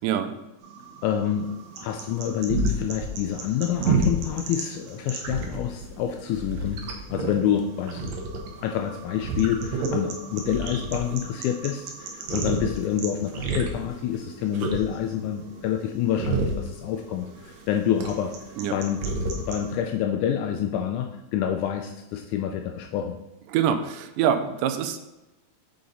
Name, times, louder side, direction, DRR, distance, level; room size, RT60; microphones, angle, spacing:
sound 1, 0.6-19.7, right 3 dB, 70° right, 1.9 m, -31 dB
voice 1, 1.0-6.8 7.1-8.2 8.6-18.3 18.7-19.0 19.3-23.2, left 9 dB, 80° left, 4 dB, 1.9 m, -27 dB
voice 2, 23.5-25.0, right 9 dB, 85° right, 9 dB, 2.1 m, -24 dB
6.8 x 5.0 x 4.0 m, 1.0 s
omnidirectional pair, 3.7 m